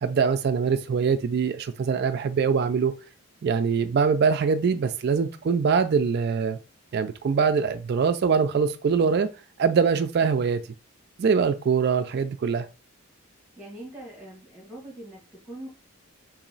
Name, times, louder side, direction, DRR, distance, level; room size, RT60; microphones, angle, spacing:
voice 1, 0.0-2.9 3.4-6.6 6.9-9.3 9.6-10.6 11.2-12.7, right 5 dB, 50° right, 0.3 m, -23 dB
voice 2, 13.6-15.7, right 1 dB, 5° right, 1.4 m, -42 dB
3.0 x 2.6 x 4.0 m
head